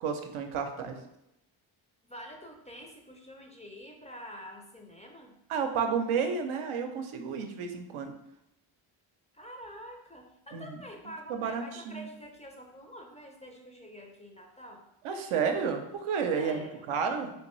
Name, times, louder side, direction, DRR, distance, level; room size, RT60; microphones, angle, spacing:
voice 1, 0.0-1.0 5.5-8.1 10.5-12.1 15.0-17.3, right 6 dB, 80° right, 5 dB, 0.6 m, -31 dB
voice 2, 2.1-5.3 9.3-14.8 16.4-16.9, equal, 15° left, 2 dB, 0.4 m, -47 dB
3.2 x 2.6 x 3.0 m, 0.86 s
cardioid pair, 60°, 49 cm